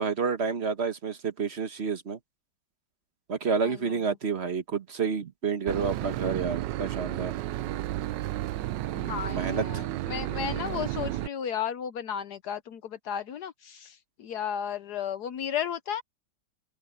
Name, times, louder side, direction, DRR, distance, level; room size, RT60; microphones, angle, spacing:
voice 1, 0.0-2.2 3.3-7.3 9.3-9.9, right 5 dB, 40° right, 1.3 m, -29 dB
voice 2, 3.6-4.0 8.8-16.0, left 8 dB, 65° left, 1.2 m, -34 dB
Boat Water vehicle / Engine, 5.7-11.3, right 15 dB, 75° right, 1.2 m, -32 dB
open air
omnidirectional pair, 2.1 m